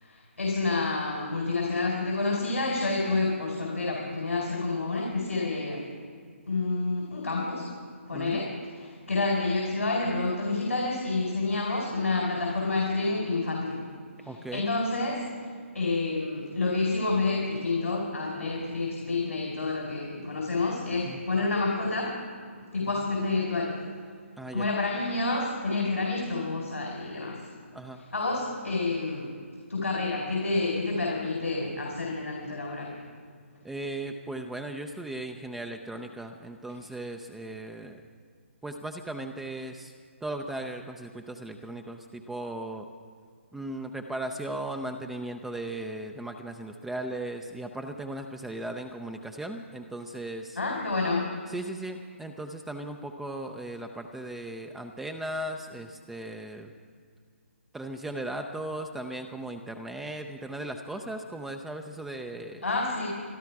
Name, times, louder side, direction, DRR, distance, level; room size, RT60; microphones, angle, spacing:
voice 1, 0.0-5.9 6.5-7.7 8.1-13.8 14.2-15.2 15.7-22.2 22.7-23.8 24.5-27.4 28.1-29.3 29.7-33.0 50.6-51.3 62.6-63.1, left 3 dB, 90° left, -2 dB, 4.5 m, -29 dB
voice 2, 14.3-14.7 21.1-21.2 24.4-24.7 27.7-28.0 33.6-38.0 38.6-39.9 40.2-42.9 43.5-50.6 51.5-56.7 57.7-62.6, right 1 dB, 5° right, 5 dB, 0.5 m, -37 dB
25.0 x 11.0 x 4.7 m, 2.1 s
figure-of-eight pair, 150°, 7 cm